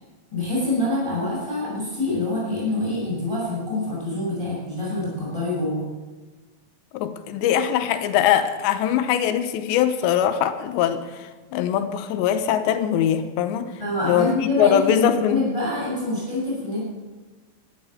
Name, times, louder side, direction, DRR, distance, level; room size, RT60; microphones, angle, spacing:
voice 1, 0.3-5.8 13.8-16.8, left 2 dB, 10° left, -6 dB, 5.6 m, -25 dB
voice 2, 6.9-13.7 14.0-15.4, left 10 dB, 85° left, 9 dB, 3.1 m, -22 dB
13.0 x 10.5 x 7.6 m, 1.3 s
omnidirectional pair, 5.0 m